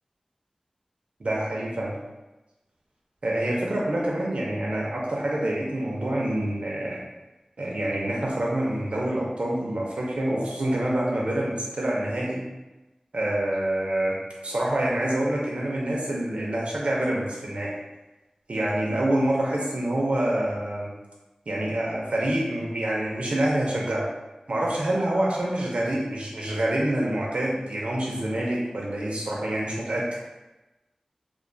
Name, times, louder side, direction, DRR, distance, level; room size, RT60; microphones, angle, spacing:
voice 1, 1.2-2.0 3.2-7.0 7.6-12.4 13.1-14.1 14.4-17.7 18.5-20.9 21.5-24.1 24.5-30.0, right 1 dB, 60° right, -4 dB, 0.4 m, -26 dB
2.4 x 2.2 x 2.5 m, 1.1 s
wide cardioid pair, 75°, 2 cm